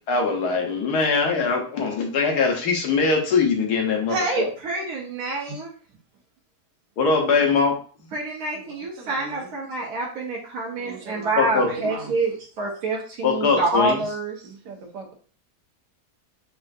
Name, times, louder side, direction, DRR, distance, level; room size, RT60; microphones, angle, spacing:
voice 1, 0.1-4.5 7.0-7.8 11.4-11.7 13.2-14.0, left 4 dB, 80° left, 1 dB, 1.5 m, -22 dB
voice 2, 4.1-5.7 8.1-14.3, right 2 dB, 70° right, -3 dB, 1.3 m, -27 dB
voice 3, 8.5-9.5 10.8-12.1 14.4-15.1, right 4 dB, 85° right, 2 dB, 1.4 m, -38 dB
5.4 x 2.4 x 2.6 m, 0.42 s
omnidirectional pair, 1.7 m